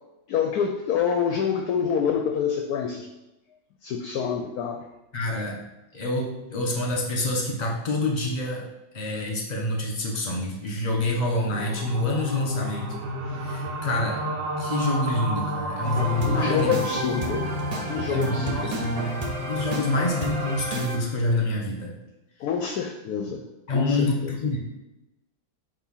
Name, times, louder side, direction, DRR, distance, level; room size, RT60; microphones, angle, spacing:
voice 1, 0.3-3.1 3.8-4.9 16.2-17.5 17.8-19.1 22.4-24.3, left 7 dB, 70° left, 5 dB, 1.0 m, -27 dB
voice 2, 5.1-5.6 5.9-8.6 8.9-13.0 13.3-14.2 14.6-16.8 18.1-19.0 19.5-21.9 23.7-24.6, left 2 dB, 25° left, 0 dB, 1.2 m, -27 dB
sound 1, 11.5-20.7, equal, 85° right, 1.4 m, -32 dB
sound 2, 15.8-21.0, right 1 dB, 45° right, 0.4 m, -31 dB
6.6 x 3.0 x 5.5 m, 0.96 s
omnidirectional pair, 1.9 m